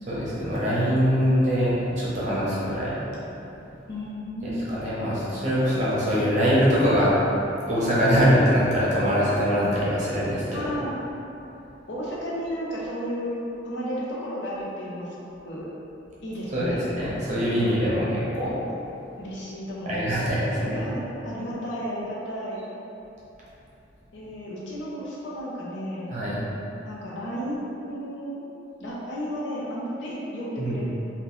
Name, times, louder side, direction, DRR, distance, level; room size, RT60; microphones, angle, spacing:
voice 1, 0.0-3.0 4.4-7.1 7.7-10.6 16.5-18.5 19.9-20.8 26.1-26.4 30.6-30.8, equal, 40° right, -8 dB, 0.8 m, -23 dB
voice 2, 3.9-4.7 9.5-9.7 10.5-10.9 11.9-15.2 15.4-15.7 16.2-16.8 17.5-18.1 19.2-20.1 20.4-22.6 24.1-26.2 26.8-28.5 28.8-30.8, equal, 65° left, -6 dB, 0.7 m, -33 dB
3.0 x 2.4 x 3.8 m, 3.0 s
head